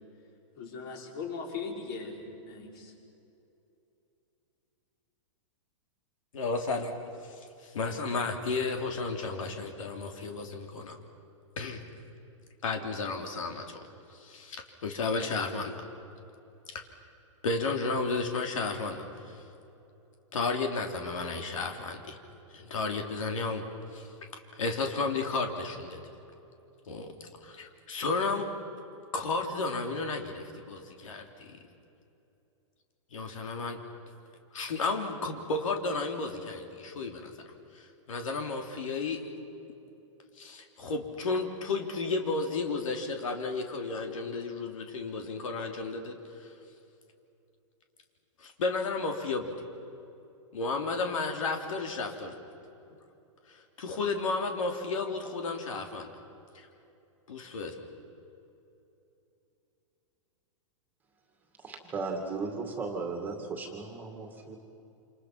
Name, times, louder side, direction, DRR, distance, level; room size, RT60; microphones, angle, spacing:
voice 1, 0.6-2.9, left 5 dB, 45° left, 2 dB, 4.8 m, -39 dB
voice 2, 6.3-6.9 7.2-11.0 11.6-11.8 12.6-13.9 14.1-15.8 16.7-16.8 17.4-19.4 20.3-22.2 22.5-23.6 23.9-24.1 24.5-26.0 26.9-28.5 29.1-31.6 33.1-33.8 34.5-37.3 37.7-39.2 40.4-46.5 48.4-49.5 50.5-52.3 53.5-56.1 57.3-57.8, left 3 dB, 85° left, 4 dB, 3.5 m, -33 dB
voice 3, 61.6-64.6, right 4 dB, 10° right, 3 dB, 2.2 m, -36 dB
28.0 x 27.5 x 6.0 m, 2.8 s
supercardioid pair, 170°, 16 cm